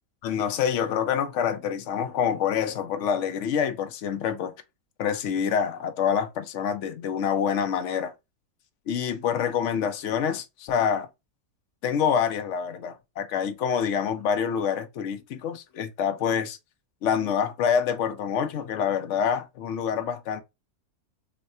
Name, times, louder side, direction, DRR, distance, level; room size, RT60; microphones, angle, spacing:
voice 1, 0.2-4.5 5.0-8.1 8.9-11.1 11.8-16.6 17.0-20.4, left 7 dB, 65° left, 0.8 m, -26 dB
4.0 x 2.1 x 2.6 m
omnidirectional pair, 1.6 m